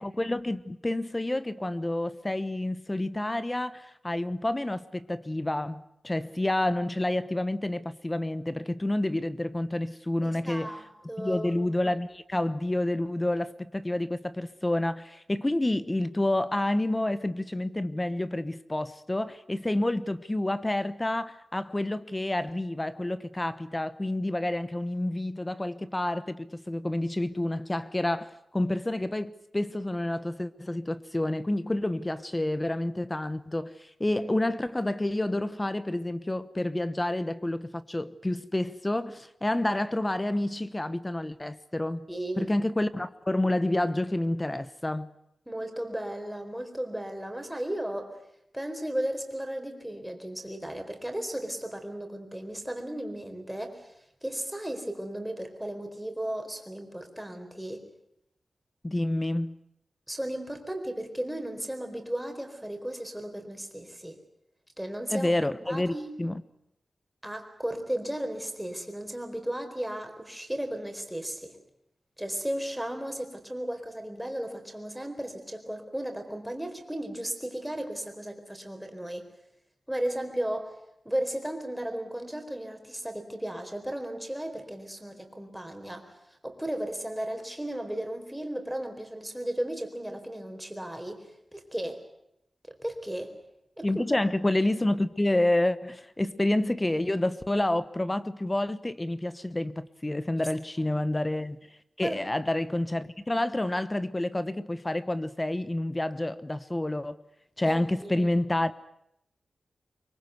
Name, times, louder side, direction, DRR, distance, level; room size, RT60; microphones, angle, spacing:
voice 1, 0.0-10.8 11.2-42.1 42.4-45.1 58.8-59.6 65.1-66.4 93.8-107.2 107.6-108.8, left 1 dB, 15° left, 1.0 m, -29 dB
voice 2, 10.2-11.5 42.1-42.5 45.5-48.2 48.5-53.9 54.2-57.8 60.1-64.1 64.8-65.3 65.7-66.1 67.2-71.6 72.2-79.3 79.9-80.7 81.0-86.1 86.4-92.0 92.8-93.4 93.8-94.2 100.8-100.9 102.0-102.2 107.6-108.3, right 1 dB, 5° right, 4.2 m, -35 dB
24.0 x 23.5 x 8.2 m
wide cardioid pair, 120°, 0 cm